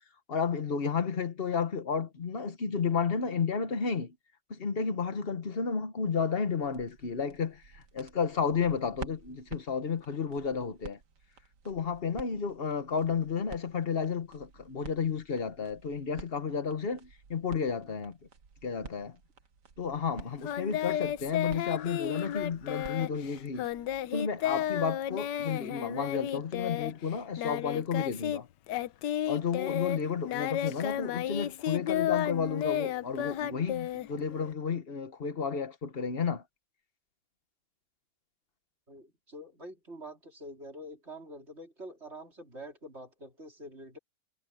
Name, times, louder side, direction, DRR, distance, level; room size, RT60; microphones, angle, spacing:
voice 1, 0.3-4.1 4.5-7.6 7.9-11.0 11.6-18.2 18.6-19.2 19.8-23.7 24.1-28.5 29.3-36.4, left 6 dB, 40° left, 1.3 m, -32 dB
sound 1, 6.6-24.1, right 5 dB, 80° right, 2.2 m, -51 dB
Singing, 20.4-28.4 28.7-34.5, left 11 dB, 85° left, 1.4 m, -32 dB
voice 2, 38.9-44.0, right 1 dB, 40° right, 4.0 m, -46 dB
omnidirectional pair, 1.8 m